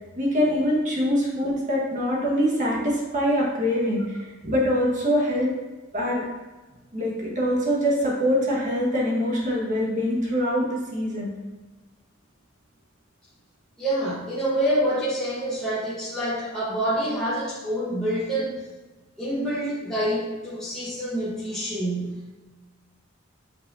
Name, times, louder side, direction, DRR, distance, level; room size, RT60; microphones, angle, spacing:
voice 1, 0.2-4.2 4.4-5.5 5.9-6.2 6.9-11.3, equal, 40° right, -4 dB, 1.7 m, -24 dB
voice 2, 13.8-18.6 19.2-22.3, right 1 dB, 5° left, -11 dB, 1.3 m, -27 dB
8.3 x 4.6 x 2.8 m, 1.2 s
head